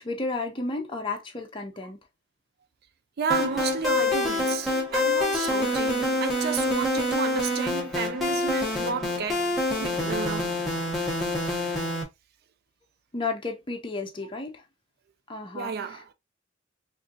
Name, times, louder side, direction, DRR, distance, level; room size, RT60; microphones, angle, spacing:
voice 1, 0.0-2.0 13.1-14.6 15.3-16.1, left 3 dB, 25° left, 0.7 m, -33 dB
voice 2, 3.2-9.5 9.8-10.5 15.5-16.1, right 6 dB, 55° right, 0.4 m, -32 dB
sound 1, 3.3-12.0, left 2 dB, ahead, 1.3 m, -26 dB
4.3 x 2.6 x 2.4 m
head